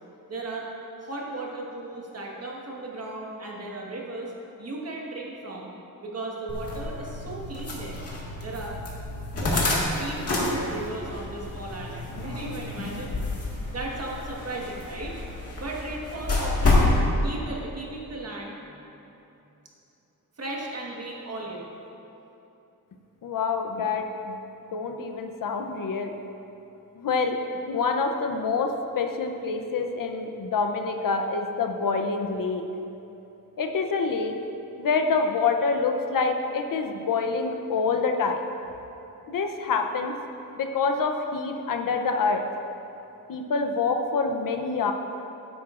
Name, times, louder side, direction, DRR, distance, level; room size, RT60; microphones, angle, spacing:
voice 1, 0.3-0.7 1.0-4.3 4.6-5.7 6.0-8.0 8.4-8.8 9.3-13.1 13.7-15.2 15.6-16.8 17.2-18.9 20.4-21.7, right 2 dB, 45° right, -2 dB, 1.5 m, -36 dB
sound 1, 6.5-17.0, left 2 dB, 45° left, 1.7 m, -28 dB
voice 2, 23.2-24.4 24.7-26.1 27.0-27.4 27.7-32.6 33.6-34.3 34.8-38.4 39.3-40.1 40.5-42.4 43.3-44.9, left 4 dB, 65° left, 5 dB, 0.7 m, -26 dB
12.0 x 10.0 x 2.5 m, 2.9 s
wide cardioid pair, 145°, 35 cm